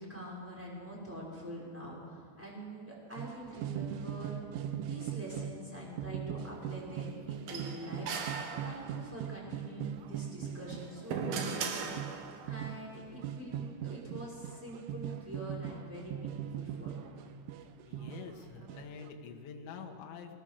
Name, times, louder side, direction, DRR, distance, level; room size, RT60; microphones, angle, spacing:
voice 1, 0.0-11.9 12.4-17.1, equal, 5° right, -5 dB, 5.0 m, -45 dB
sound 1, 3.2-5.7 6.0-19.1, right 9 dB, 85° right, 3.2 m, -40 dB
sound 2, 7.5-9.2 10.6-12.6, right 5 dB, 65° right, 2.5 m, -38 dB
voice 2, 17.6-20.3, left 6 dB, 70° left, 3 dB, 3.6 m, -47 dB
21.5 x 19.5 x 6.8 m, 2.2 s
omnidirectional pair, 5.9 m